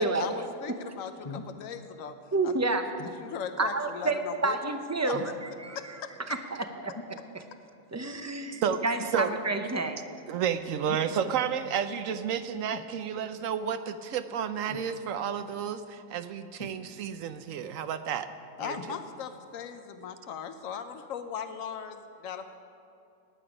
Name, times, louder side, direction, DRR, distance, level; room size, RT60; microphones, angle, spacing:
voice 1, 0.0-2.1 2.4-2.5 3.2-4.6 5.0-5.1 5.7-6.1 18.6-22.5, left 7 dB, 90° left, 8 dB, 1.1 m, -38 dB
sound 1, 1.2-1.6 3.0-3.2 5.1-5.5 6.9-7.2 9.0-9.2 10.9-11.1 12.7-12.9 14.6-14.9 16.6-17.2 18.7-19.0 19.8-19.9, left 4 dB, 25° left, 0.8 m, -42 dB
voice 2, 2.3-2.9 3.6-5.8 6.3-6.9 7.3-7.4 7.9-10.0, right 3 dB, 25° right, 7 dB, 0.4 m, -29 dB
voice 3, 10.3-18.3 18.6-18.8, right 8 dB, 80° right, 11 dB, 1.1 m, -31 dB
19.0 x 8.8 x 5.0 m, 2.6 s
omnidirectional pair, 1.3 m